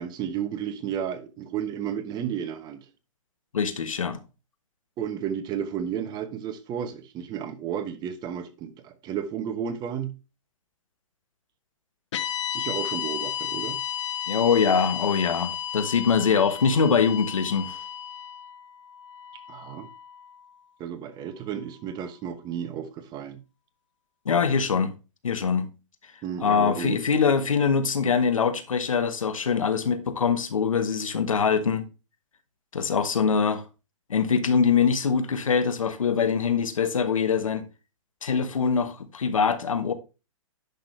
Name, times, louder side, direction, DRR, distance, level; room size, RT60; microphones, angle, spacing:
voice 1, 0.0-2.8 5.0-10.2 12.5-13.8 19.5-19.9 20.8-23.4 26.2-27.0, right 8 dB, 25° right, 1.0 m, -32 dB
voice 2, 3.5-4.2 14.3-17.8 24.2-24.9 25.2-25.7 26.4-31.8 32.7-33.6 34.1-37.7 38.2-39.9, left 6 dB, 85° left, 1.3 m, -23 dB
sound 1, 12.1-20.4, left 10 dB, 65° left, 1.0 m, -33 dB
10.5 x 6.0 x 3.2 m
hypercardioid pair, 130°, 17 cm